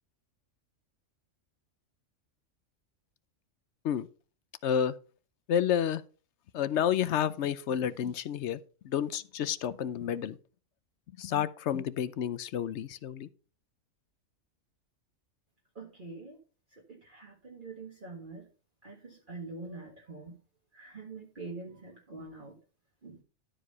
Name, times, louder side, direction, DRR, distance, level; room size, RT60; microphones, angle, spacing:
voice 1, 4.6-5.0 5.5-6.0 6.5-10.4 11.2-13.3, left 9 dB, 65° left, 0.9 m, -30 dB
voice 2, 15.8-16.4 16.7-18.5 18.8-20.3 20.7-22.6 23.0-23.2, right 3 dB, 40° right, 1.8 m, -45 dB
12.5 x 4.8 x 5.4 m
omnidirectional pair, 1.4 m